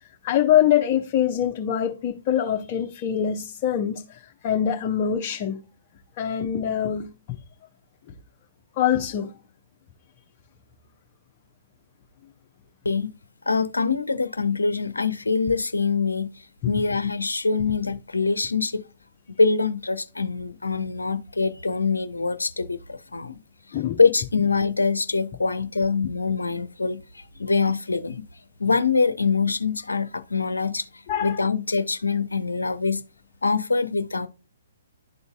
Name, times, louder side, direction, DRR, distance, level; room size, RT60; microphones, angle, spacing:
voice 1, 0.2-5.6 6.2-7.4 8.8-9.3 23.7-24.0 31.1-31.4, left 10 dB, 35° left, 0.7 m, -24 dB
voice 2, 13.5-18.8 19.3-23.4 23.7-28.3 28.6-33.0 33.4-34.3, left 4 dB, 80° left, 0.6 m, -24 dB
12.0 x 4.0 x 2.3 m
figure-of-eight pair, 130°, 0 cm